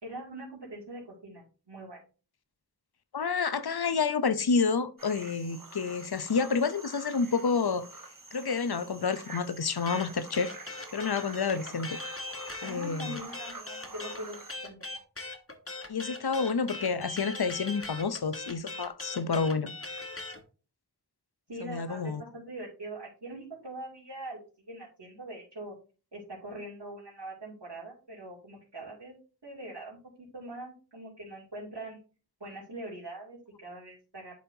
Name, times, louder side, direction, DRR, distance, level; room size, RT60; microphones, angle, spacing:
voice 1, 0.0-2.0 12.6-14.8 21.5-25.7 26.1-29.2 29.4-32.0 32.4-34.3, right 1 dB, 75° right, 2.8 m, -43 dB
voice 2, 3.1-7.9 8.3-10.5 10.9-12.0 12.6-13.2 15.9-19.7 21.6-22.2, left 5 dB, 60° left, 0.7 m, -29 dB
sound 1, 5.0-14.6, right 3 dB, 50° right, 1.3 m, -47 dB
sound 2, 9.9-20.4, left 2 dB, 30° left, 1.3 m, -40 dB
11.0 x 4.3 x 2.7 m
wide cardioid pair, 45°, 42 cm